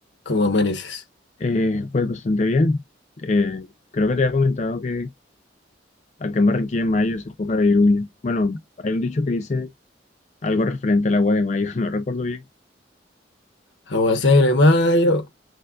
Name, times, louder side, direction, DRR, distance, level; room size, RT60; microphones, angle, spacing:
voice 1, 0.3-1.0 13.9-15.2, left 2 dB, 70° left, 1.1 m, -18 dB
voice 2, 1.4-2.8 3.2-3.7 3.9-5.1 6.2-9.7 10.4-12.4, left 2 dB, 40° left, 0.4 m, -21 dB
6.4 x 2.3 x 2.4 m
head